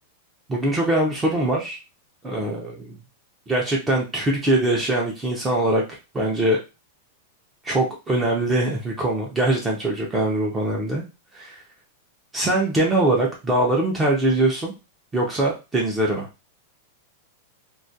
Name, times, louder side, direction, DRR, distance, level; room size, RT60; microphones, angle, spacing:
voice 1, 0.5-1.8 2.2-3.0 3.5-5.8 6.1-6.6 7.6-11.0 11.3-11.6 12.3-14.7 15.1-16.3, right 1 dB, 10° right, -2 dB, 0.4 m, -22 dB
2.2 x 2.1 x 2.6 m, 0.27 s
supercardioid pair, 165°, 0 cm